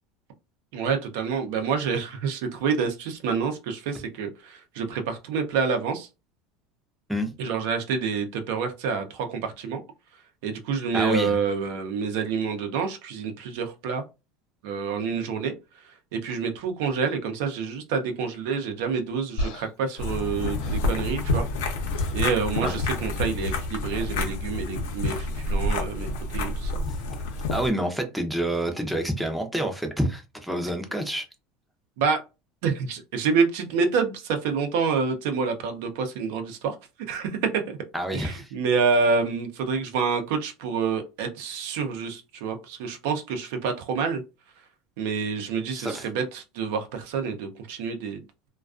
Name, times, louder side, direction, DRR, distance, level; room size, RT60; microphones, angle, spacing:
voice 1, 0.7-6.1 7.4-9.8 10.4-14.0 14.6-21.5 22.1-26.7 32.0-32.2 32.6-36.8 37.1-37.8 38.1-44.2 45.0-48.2, right 5 dB, 75° right, 0.6 m, -27 dB
voice 2, 10.9-11.3 22.6-22.7 26.8-26.9 27.5-31.3 37.9-38.5 45.7-46.1, right 1 dB, ahead, 0.5 m, -28 dB
sound 1, 19.4-21.7 21.9-22.3 23.4-23.7 25.1-25.3, equal, 65° left, 1.0 m, -35 dB
sound 2, 20.0-27.7, left 2 dB, 85° left, 0.7 m, -28 dB
2.4 x 2.2 x 2.4 m
supercardioid pair, 135°, 0 cm